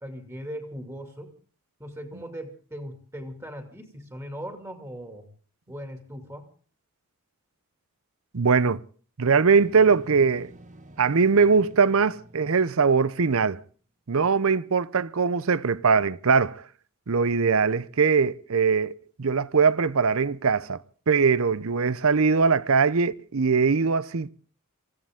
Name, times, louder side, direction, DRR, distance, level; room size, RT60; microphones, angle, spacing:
voice 1, 0.0-1.3 1.8-5.3 5.7-6.5, equal, 15° right, 2.4 m, -39 dB
voice 2, 8.3-8.8 9.2-10.5 11.0-13.6 14.1-16.6 17.1-18.9 19.2-24.3, right 5 dB, 65° right, 0.7 m, -21 dB
sound 1, 9.5-13.4, right 1 dB, 35° right, 1.2 m, -49 dB
25.5 x 15.5 x 3.6 m
head